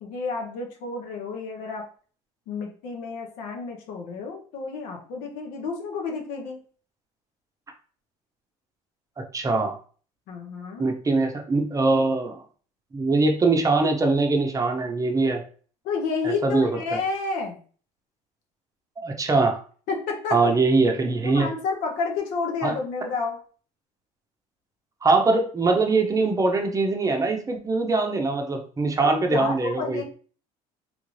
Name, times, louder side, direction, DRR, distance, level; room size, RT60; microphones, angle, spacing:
voice 1, 0.0-1.9 2.5-6.6 10.3-10.9 15.8-17.6 19.9-20.5 21.2-23.4 29.0-30.0, left 4 dB, 75° left, 2 dB, 0.9 m, -30 dB
voice 2, 9.3-9.8 10.8-12.4 12.9-15.4 16.2-16.7 19.0-19.6 20.3-21.5 22.6-22.7 25.0-30.0, right 3 dB, 25° right, 4 dB, 0.6 m, -22 dB
3.6 x 2.4 x 3.1 m, 0.43 s
supercardioid pair, 100°, 15 cm